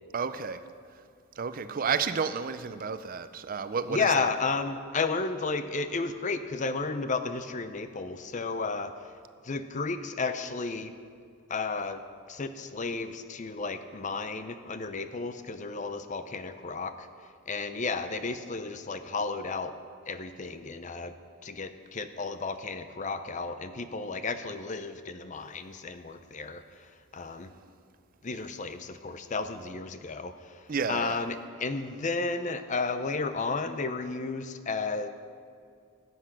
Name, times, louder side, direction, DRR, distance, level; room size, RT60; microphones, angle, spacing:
voice 1, 0.1-0.6 1.4-4.3 30.7-31.2, right 5 dB, 40° right, 11 dB, 0.4 m, -31 dB
voice 2, 3.9-8.9 9.4-11.0 11.5-12.0 12.3-17.1 17.5-19.7 20.1-21.1 21.4-26.6 27.1-27.5 28.2-30.6 30.9-35.1, left 4 dB, 35° left, 10 dB, 0.6 m, -33 dB
14.5 x 8.1 x 5.9 m, 2.3 s
head